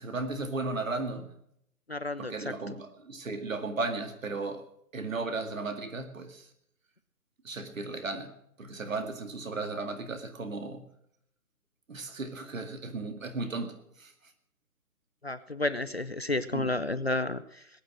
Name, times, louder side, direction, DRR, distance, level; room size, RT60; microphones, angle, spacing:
voice 1, 0.0-1.4 2.2-4.6 4.9-6.5 7.4-8.3 8.6-10.9 11.9-14.1 16.4-16.7, right 3 dB, 55° right, 7 dB, 2.1 m, -35 dB
voice 2, 1.9-2.5 15.2-17.7, left 2 dB, 45° left, 14 dB, 0.5 m, -31 dB
19.0 x 9.3 x 6.3 m, 0.73 s
hypercardioid pair, 170°, 46 cm